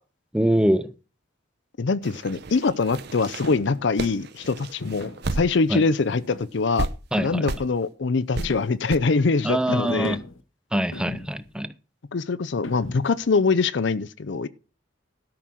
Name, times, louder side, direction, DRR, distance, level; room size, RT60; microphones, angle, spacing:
voice 1, 0.3-0.9 5.7-5.8 7.1-7.5 9.4-10.2 10.7-11.7, right 1 dB, 5° right, 0.5 m, -23 dB
voice 2, 1.8-6.9 7.2-10.2 12.1-14.5, left 4 dB, 65° left, 0.6 m, -23 dB
sound 1, 2.0-5.8 6.1-6.2 6.8-6.9 7.5-7.7 8.3-8.5 8.9-9.0, right 3 dB, 55° right, 0.8 m, -32 dB
sound 2, 3.4-3.9 4.8-5.3 6.1-6.7 7.2-7.6 8.4-9.0 9.9-10.4 10.9-11.5 12.6-13.2, left 2 dB, 90° left, 1.1 m, -37 dB
12.5 x 6.0 x 6.2 m
head